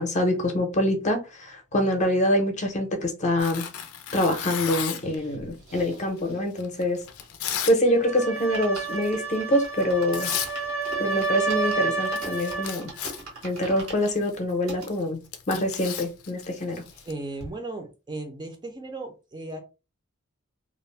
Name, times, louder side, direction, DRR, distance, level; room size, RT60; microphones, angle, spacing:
voice 1, 0.0-3.6 4.1-7.0 7.7-10.3 11.0-12.9 13.4-15.2 15.5-16.8, left 1 dB, 35° left, 0.6 m, -25 dB
Tearing, 3.4-5.2 5.9-7.8 8.1-8.4 8.8-9.1 9.8-9.9 10.1-10.5 10.8-11.3 11.6-11.7 11.9-17.1, left 9 dB, 80° left, 0.4 m, -34 dB
sound 1, 4.9-7.7 8.0-8.1 8.4-14.9 15.5-15.6 15.7-15.8 16.2-17.1 17.4-17.5, right 3 dB, 90° right, 1.3 m, -43 dB
sound 2, 7.9-12.8, right 4 dB, 70° right, 0.9 m, -30 dB
voice 2, 17.0-19.6, right 2 dB, 20° right, 0.5 m, -36 dB
2.4 x 2.0 x 3.2 m
head